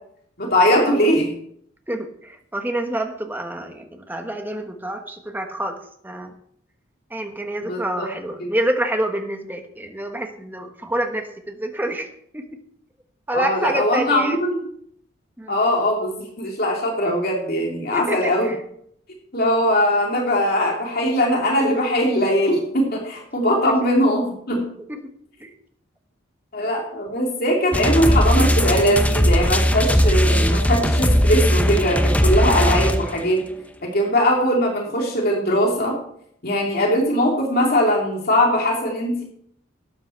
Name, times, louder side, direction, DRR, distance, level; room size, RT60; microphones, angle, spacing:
voice 1, 0.4-1.3 7.6-8.1 8.4-8.5 13.3-14.7 15.5-18.5 19.3-24.7 26.5-33.4 33.8-36.0 36.4-39.2, equal, 50° left, 0 dB, 2.8 m, -20 dB
voice 2, 1.9-5.8 6.0-6.3 7.1-12.1 12.3-12.4 13.3-14.4 15.4-15.6 17.9-18.6 23.6-23.9 25.4-25.5, right 1 dB, 10° right, 5 dB, 1.3 m, -27 dB
sound 1, 27.7-33.3, equal, 5° left, 0.8 m, -18 dB
13.0 x 9.4 x 4.4 m, 0.67 s
head